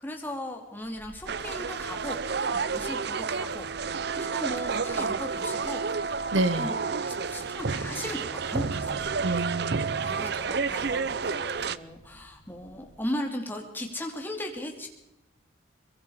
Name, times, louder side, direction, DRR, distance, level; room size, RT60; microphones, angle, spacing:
voice 1, 0.0-2.2 2.5-9.1 10.0-14.9, left 1 dB, 10° left, 2 dB, 2.8 m, -37 dB
sound 1, 0.8-13.2 13.5-13.6, equal, 70° left, 3.3 m, -54 dB
sound 2, 1.3-11.8, right 5 dB, 55° right, 0.6 m, -30 dB
voice 2, 6.3-6.7 9.2-10.2, right 2 dB, 70° right, 13 dB, 1.0 m, -28 dB
23.5 x 22.0 x 5.0 m, 0.89 s
head